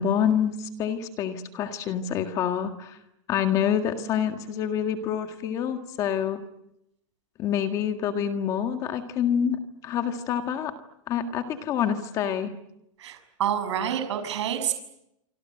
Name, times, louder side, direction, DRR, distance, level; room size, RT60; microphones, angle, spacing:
voice 1, 0.0-3.0 3.3-6.4 7.4-10.7 11.1-12.5, left 8 dB, 20° left, 7 dB, 1.8 m, -27 dB
voice 2, 13.0-14.7, right 9 dB, 60° right, 8 dB, 6.4 m, -28 dB
27.0 x 26.5 x 7.8 m, 0.81 s
supercardioid pair, 180°, 17 cm